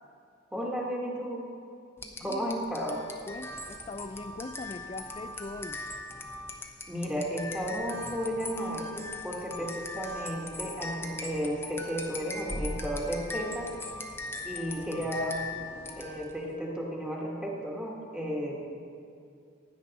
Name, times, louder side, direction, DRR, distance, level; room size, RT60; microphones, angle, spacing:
voice 1, 0.5-1.5 2.2-3.0 6.9-13.7 14.4-15.5 16.0-18.8, equal, 5° right, -4 dB, 1.4 m, -33 dB
sound 1, 2.0-16.4, left 2 dB, 15° left, 0.8 m, -40 dB
voice 2, 2.2-2.6 3.3-5.8, left 2 dB, 30° left, 10 dB, 0.4 m, -41 dB
16.0 x 9.9 x 4.1 m, 2.4 s
head